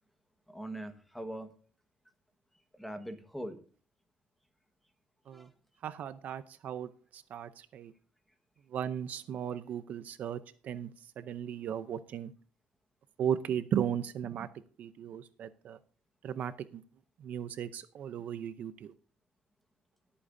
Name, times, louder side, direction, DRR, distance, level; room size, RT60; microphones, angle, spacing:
voice 1, 0.5-1.5 2.7-3.6 5.3-5.5, right 1 dB, ahead, 8 dB, 1.3 m, -41 dB
voice 2, 5.8-7.9 8.7-12.3 13.2-14.5 14.8-15.8 16.2-16.8 17.2-18.9, right 9 dB, 50° right, 12 dB, 0.6 m, -36 dB
21.0 x 8.5 x 2.6 m, 0.40 s
cardioid pair, 150°, 4 cm